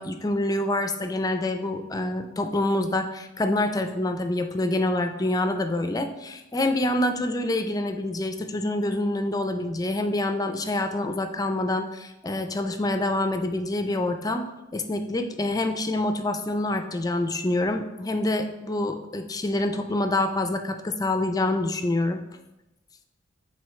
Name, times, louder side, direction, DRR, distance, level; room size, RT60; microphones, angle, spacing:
voice 1, 0.0-22.2, left 1 dB, 20° left, 7 dB, 0.4 m, -26 dB
9.3 x 4.1 x 3.2 m, 0.99 s
head